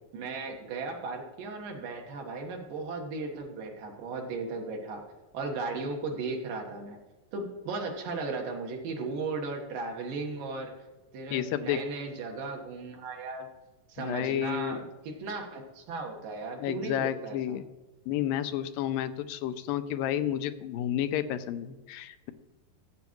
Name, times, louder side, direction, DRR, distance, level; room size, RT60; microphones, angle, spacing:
voice 1, 0.1-5.0 5.3-7.0 7.3-10.7 11.1-13.5 13.9-17.4, right 3 dB, 75° right, 1 dB, 3.0 m, -36 dB
voice 2, 11.3-11.8 14.0-14.8 16.6-17.7 18.1-22.3, left 11 dB, 85° left, 11 dB, 2.3 m, -31 dB
14.0 x 8.3 x 3.1 m, 1.1 s
omnidirectional pair, 4.0 m